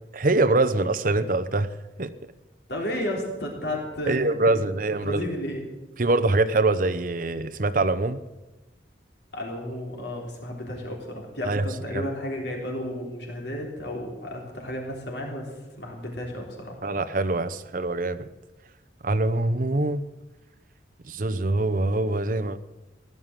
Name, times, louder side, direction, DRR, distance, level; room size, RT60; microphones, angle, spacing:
voice 1, 0.1-2.1 4.1-5.2 6.0-8.2 11.4-11.7 11.9-12.1 16.8-18.3 19.0-20.0 21.0-22.6, right 2 dB, 45° right, 10 dB, 0.8 m, -24 dB
voice 2, 2.7-4.5 5.0-5.6 9.3-16.8, left 1 dB, 65° left, 0 dB, 3.6 m, -33 dB
16.5 x 11.5 x 7.4 m, 1.1 s
head